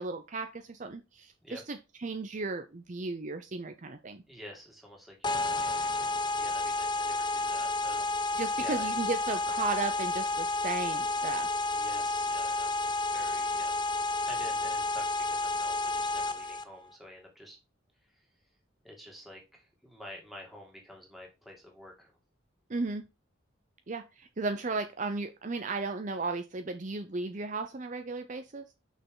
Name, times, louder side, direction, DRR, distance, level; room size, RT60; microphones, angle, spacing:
voice 1, 0.0-4.2 8.4-11.5 22.7-23.0 23.9-28.6, right 3 dB, 40° right, 8 dB, 0.6 m, -35 dB
voice 2, 4.3-8.2 8.6-9.1 11.7-13.7 14.3-17.6 18.8-22.1, left 1 dB, ahead, 0 dB, 2.2 m, -49 dB
sound 1, 5.2-16.6, left 2 dB, 25° left, 0.5 m, -31 dB
6.4 x 5.5 x 3.8 m, 0.26 s
head